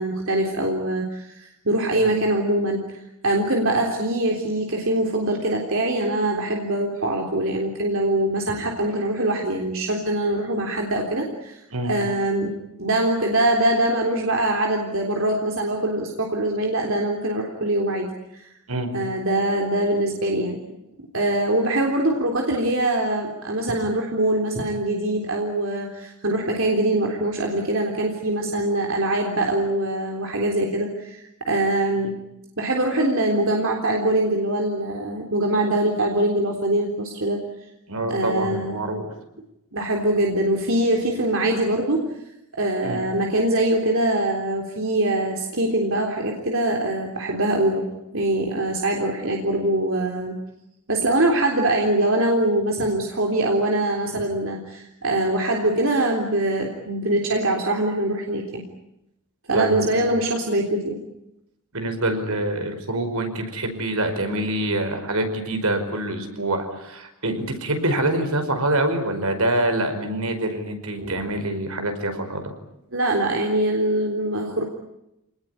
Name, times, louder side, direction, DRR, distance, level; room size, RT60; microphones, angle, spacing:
voice 1, 0.0-3.0 3.2-11.6 11.8-18.1 18.3-18.5 18.9-20.6 21.1-32.2 32.6-37.4 38.1-38.8 39.7-42.0 42.6-47.9 48.1-50.3 50.9-58.6 59.5-61.0 71.0-71.3 72.9-74.6, right 1 dB, 60° right, 1 dB, 3.7 m, -23 dB
voice 2, 37.9-39.1 42.8-43.0 54.1-54.2 59.5-60.1 61.7-72.4, right 1 dB, 75° right, 7 dB, 5.2 m, -25 dB
28.0 x 19.5 x 9.9 m, 0.85 s
head